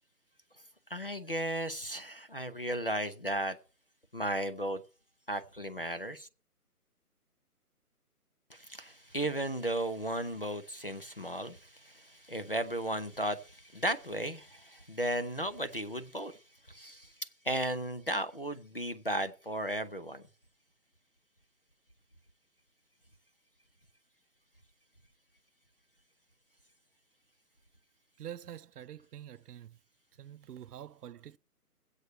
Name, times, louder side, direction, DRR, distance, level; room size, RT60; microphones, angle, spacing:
voice 1, 0.9-3.6 4.1-4.8 5.3-6.3 8.5-16.4 16.7-20.2, right 1 dB, 40° left, 0.5 m, -35 dB
voice 2, 28.2-29.8 30.2-31.4, right 10 dB, 75° right, 0.6 m, -46 dB
22.0 x 8.0 x 3.0 m
hypercardioid pair, 175°, 46 cm